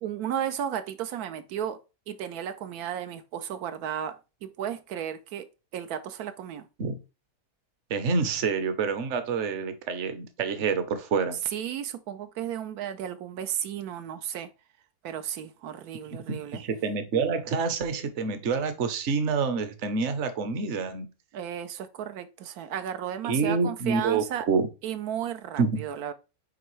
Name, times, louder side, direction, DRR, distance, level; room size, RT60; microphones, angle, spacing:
voice 1, 0.0-1.8 2.1-5.5 5.7-6.7 11.5-14.5 15.0-16.6 21.3-24.4 24.8-26.1, right 9 dB, 85° right, 1.1 m, -34 dB
voice 2, 7.9-11.4 16.3-21.1 23.2-24.7 25.6-25.8, right 5 dB, 55° right, 1.1 m, -27 dB
9.2 x 3.4 x 3.1 m
omnidirectional pair, 1.6 m